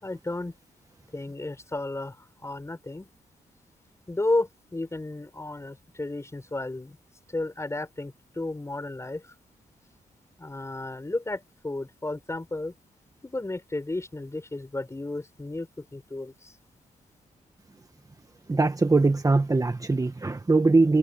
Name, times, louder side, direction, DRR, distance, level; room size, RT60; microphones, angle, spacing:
voice 1, 0.0-0.5 1.1-2.1 2.4-3.0 4.1-7.0 7.3-9.2 10.4-12.7 13.2-15.7 15.9-16.3, left 2 dB, 20° left, 4.9 m, -32 dB
voice 2, 18.5-21.0, right 3 dB, 25° right, 1.6 m, -21 dB
cardioid pair, 85°, 14 cm